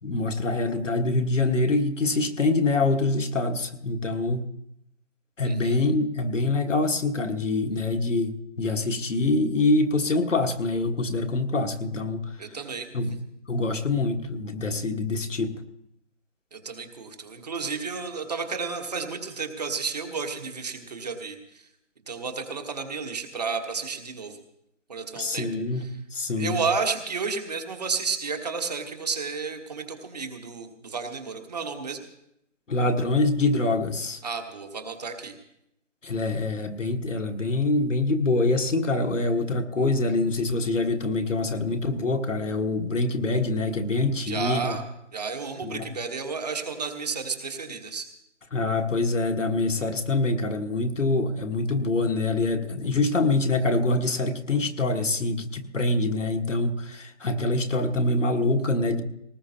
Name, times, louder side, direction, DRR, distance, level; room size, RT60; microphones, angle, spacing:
voice 1, 0.0-4.4 5.4-12.2 12.9-13.1 13.5-15.5 25.1-25.9 26.1-26.6 32.7-34.2 36.0-44.8 45.6-45.9 48.5-59.0, left 2 dB, 75° left, 4 dB, 1.5 m, -25 dB
voice 2, 5.4-5.8 12.4-12.9 16.5-21.6 22.1-24.4 24.9-25.5 26.4-32.0 34.2-35.4 44.3-44.8 45.1-48.1, right 5 dB, 35° right, 5 dB, 1.3 m, -32 dB
20.0 x 19.0 x 2.8 m, 0.78 s
figure-of-eight pair, 160°, 37 cm